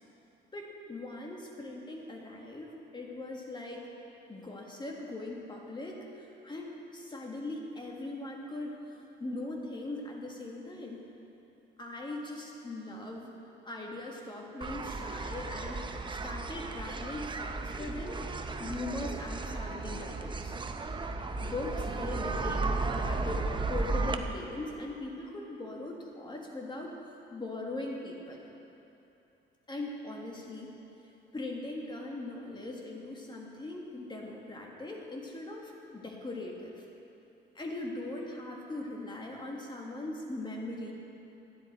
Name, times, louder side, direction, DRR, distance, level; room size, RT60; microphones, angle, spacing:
voice 1, 0.5-3.9 4.3-8.7 9.2-11.1 11.8-13.3 13.6-18.2 18.6-20.6 21.4-27.0 27.3-28.4 29.7-30.7 31.3-36.7 37.6-40.9, left 2 dB, 25° left, -1 dB, 1.8 m, -40 dB
sound 1, 14.6-24.1, right 3 dB, 25° right, 0.6 m, -34 dB
12.5 x 10.0 x 4.4 m, 2.9 s
cardioid pair, 90°, 20 cm